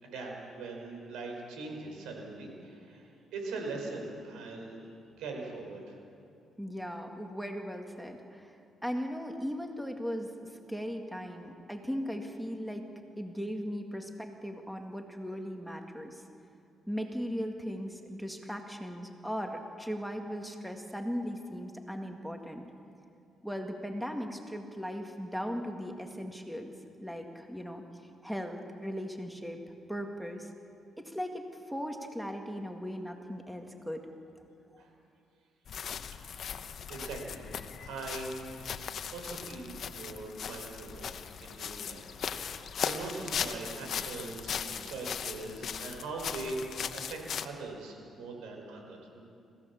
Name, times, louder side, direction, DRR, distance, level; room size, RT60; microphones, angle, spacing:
voice 1, 0.0-6.0 34.8-34.9 36.9-37.5 37.8-38.3 39.1-41.1 41.4-49.2, right 3 dB, 90° right, 1 dB, 5.1 m, -41 dB
voice 2, 6.6-8.6 8.8-12.9 13.2-16.2 16.9-22.6 23.4-26.7 27.0-27.8 28.2-29.6 29.9-30.5 31.0-34.0, equal, ahead, 3 dB, 2.1 m, -38 dB
sound 1, 35.7-47.5, left 7 dB, 60° left, 1.0 m, -38 dB
26.5 x 16.0 x 7.2 m, 2.6 s
cardioid pair, 90°, 0 cm